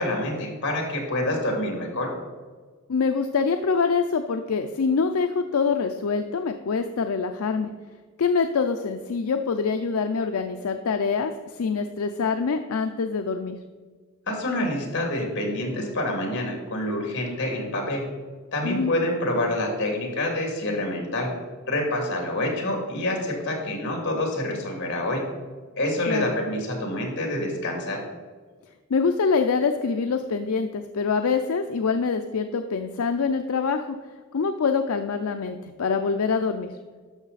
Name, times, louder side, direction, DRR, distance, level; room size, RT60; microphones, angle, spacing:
voice 1, 0.0-2.1 14.3-18.0 18.5-21.3 21.7-25.2 25.8-28.0, left 1 dB, 55° left, 1 dB, 2.5 m, -27 dB
voice 2, 2.9-7.7 8.2-13.6 18.6-18.9 26.1-26.4 28.9-34.0 34.3-36.7, left 5 dB, 75° left, 7 dB, 0.5 m, -25 dB
12.0 x 6.3 x 4.1 m, 1.5 s
head